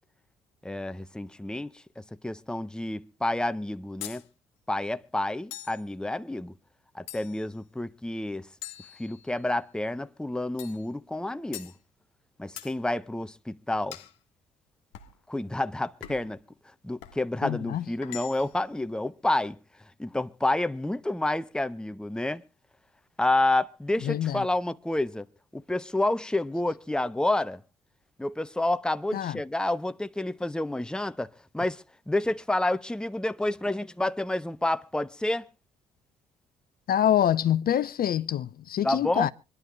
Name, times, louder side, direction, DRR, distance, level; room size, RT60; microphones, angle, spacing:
voice 1, 0.6-4.2 4.7-6.5 6.9-8.5 9.0-11.7 12.4-14.0 15.3-16.4 16.8-19.6 20.0-22.4 23.2-25.3 25.5-27.6 28.2-35.5 38.8-39.3, left 1 dB, 5° left, 0.8 m, -29 dB
sound 1, 4.0-4.3 5.5-5.9 7.1-7.5 8.6-9.5 10.6-10.9 11.5-11.8 12.6-12.8 13.9-14.2 14.9-15.2 16.0-16.4 17.0-17.2 18.0-18.6, left 13 dB, 70° left, 1.3 m, -43 dB
voice 2, 17.4-17.8 24.0-24.4 29.1-29.4 36.9-39.3, left 10 dB, 45° left, 0.7 m, -25 dB
25.5 x 11.0 x 3.2 m
figure-of-eight pair, 45°, 20 cm